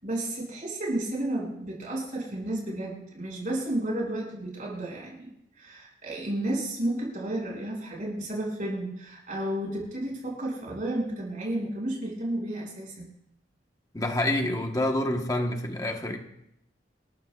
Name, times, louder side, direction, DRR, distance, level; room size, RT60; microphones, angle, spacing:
voice 1, 0.0-5.3 5.6-13.1, right 1 dB, 50° right, 6.0 m, -32 dB
voice 2, 13.9-16.2, left 1 dB, 20° left, 1.2 m, -27 dB
28.5 x 14.0 x 2.4 m
head